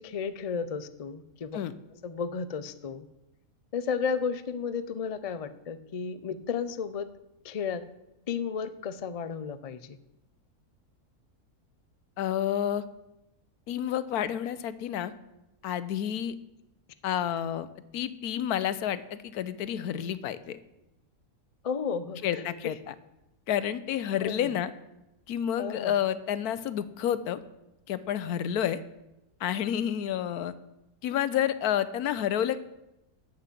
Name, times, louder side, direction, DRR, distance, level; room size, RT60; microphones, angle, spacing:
voice 1, 0.0-1.6 2.0-3.0 3.7-7.1 7.4-7.8 8.3-10.0 21.6-22.4 24.2-24.5 25.6-25.9, left 6 dB, 55° left, 12 dB, 0.4 m, -33 dB
voice 2, 12.2-12.8 13.7-15.1 15.6-16.3 17.0-17.7 17.9-20.6 22.2-22.9 23.5-24.7 25.3-27.4 27.9-28.8 29.4-30.5 31.0-32.6, left 10 dB, 85° left, 15 dB, 1.2 m, -29 dB
10.5 x 7.9 x 7.5 m, 0.92 s
omnidirectional pair, 1.6 m